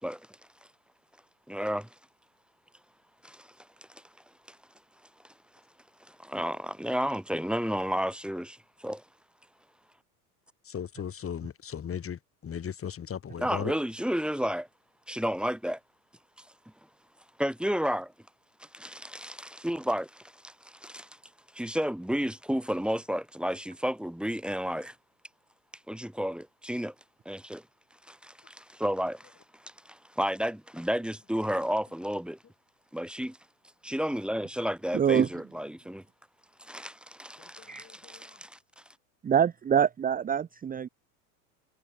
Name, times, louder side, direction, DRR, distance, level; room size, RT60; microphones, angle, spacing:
voice 1, 1.5-2.0 3.2-3.5 3.9-4.0 4.5-4.6 6.0-9.0 13.4-14.7 15.1-15.8 16.4-16.5 17.4-18.1 18.6-21.2 21.5-25.0 25.9-26.9 27.3-27.7 28.1-32.4 32.9-33.4 33.8-36.0 36.6-38.8, equal, ahead, 2.2 m, -32 dB
voice 2, 10.6-13.7 37.6-38.4, left 8 dB, 25° left, 2.5 m, -37 dB
voice 3, 34.9-35.3 37.7-37.8 39.2-40.9, right 8 dB, 20° right, 0.8 m, -25 dB
hypercardioid pair, 95°, 48 cm